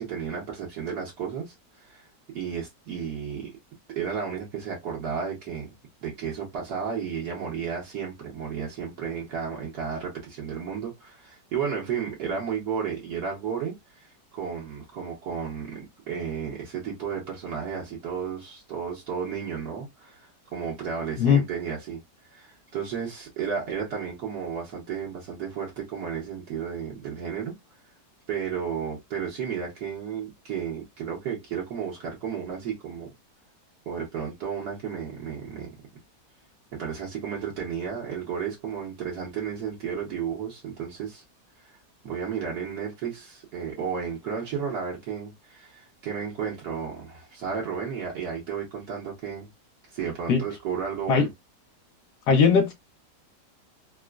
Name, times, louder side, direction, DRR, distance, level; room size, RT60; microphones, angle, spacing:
voice 1, 0.0-2.0 2.3-3.6 3.9-5.7 6.0-14.1 14.3-22.0 22.3-27.5 28.3-33.1 33.9-35.7 36.7-41.2 41.6-41.7 42.0-49.5 49.9-51.3, right 7 dB, 65° right, 1.5 m, -33 dB
voice 2, 52.3-52.7, left 6 dB, 70° left, 1.4 m, -19 dB
4.1 x 2.1 x 2.3 m
omnidirectional pair, 1.9 m